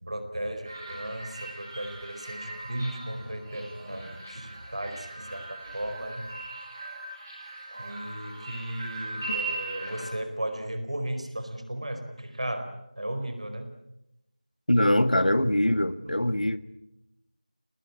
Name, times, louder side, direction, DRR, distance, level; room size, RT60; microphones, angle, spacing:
voice 1, 0.0-6.2 7.8-12.7 13.0-13.7 15.3-15.4 16.0-16.1, right 1 dB, 50° right, 4.6 m, -35 dB
sound 1, 0.6-10.0, right 3 dB, 15° right, 7.8 m, -39 dB
voice 2, 14.7-16.6, left 1 dB, 75° left, 1.8 m, -23 dB
28.5 x 20.0 x 8.7 m
figure-of-eight pair, 175°, 4 cm